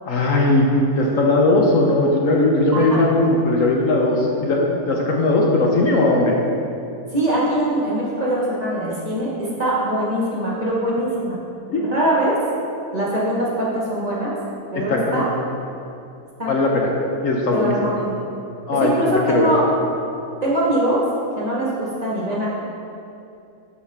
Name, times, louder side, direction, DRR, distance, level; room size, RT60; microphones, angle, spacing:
voice 1, 0.1-6.3 11.7-11.8 14.7-15.2 16.5-16.9 17.2-17.9 18.7-18.9 19.3-19.5, left 2 dB, 65° left, -1 dB, 1.0 m, -18 dB
voice 2, 7.1-11.4 11.7-12.3 12.9-14.3 14.7-15.3 16.4-16.5 17.5-18.1 18.8-19.6 20.4-21.0 21.4-22.5, right 1 dB, 25° right, -7 dB, 1.5 m, -22 dB
12.0 x 4.7 x 3.4 m, 2.7 s
omnidirectional pair, 1.6 m